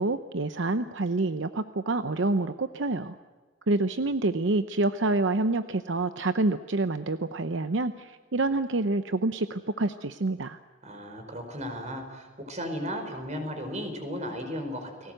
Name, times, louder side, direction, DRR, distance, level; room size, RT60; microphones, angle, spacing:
voice 1, 0.0-3.1 3.7-10.6, right 2 dB, 75° right, 10 dB, 0.8 m, -27 dB
voice 2, 10.8-15.1, equal, 40° right, 6 dB, 5.0 m, -35 dB
30.0 x 20.0 x 7.9 m, 1.3 s
head